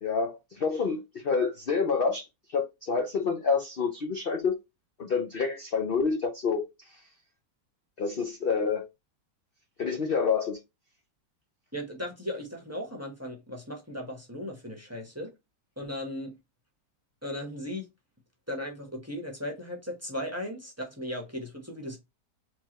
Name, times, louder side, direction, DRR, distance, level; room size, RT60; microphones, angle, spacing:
voice 1, 0.0-4.6 5.0-7.0 8.0-8.9 9.8-10.6, left 5 dB, 55° left, 0.6 m, -28 dB
voice 2, 11.7-15.3 15.8-16.4 17.2-17.9 18.5-22.0, left 1 dB, 10° right, 1.1 m, -37 dB
4.6 x 3.4 x 3.0 m
omnidirectional pair, 1.9 m